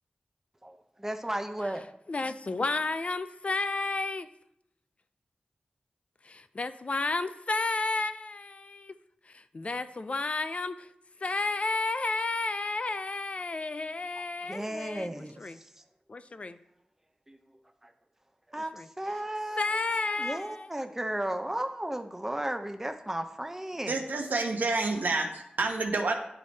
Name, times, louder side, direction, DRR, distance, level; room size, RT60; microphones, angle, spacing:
voice 1, 0.6-1.8 14.5-15.6 17.3-17.4 17.8-17.9 18.5-19.8 20.2-24.0, right 1 dB, 15° right, 7 dB, 0.6 m, -34 dB
voice 2, 2.1-4.3 6.2-8.9 9.3-10.9 11.2-15.6 16.1-16.6 18.7-18.9 19.6-20.7, left 3 dB, 45° left, 11 dB, 0.4 m, -32 dB
voice 3, 23.9-26.1, right 3 dB, 75° right, 3 dB, 1.0 m, -28 dB
10.0 x 3.3 x 4.0 m, 0.75 s
wide cardioid pair, 70°, 3 cm